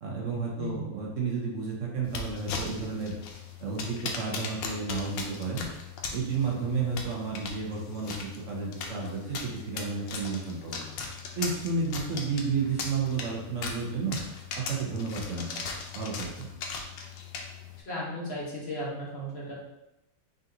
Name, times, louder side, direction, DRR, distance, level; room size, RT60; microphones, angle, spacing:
voice 1, 0.0-3.1 3.6-5.6 6.1-10.8 11.4-14.2 14.5-15.5 15.9-16.5, right 4 dB, 55° right, -2 dB, 0.9 m, -32 dB
sound 1, 2.0-17.8, left 5 dB, 90° left, 1.3 m, -39 dB
voice 2, 17.9-19.5, left 1 dB, 45° left, -5 dB, 1.0 m, -35 dB
3.8 x 3.8 x 2.7 m, 0.93 s
omnidirectional pair, 2.0 m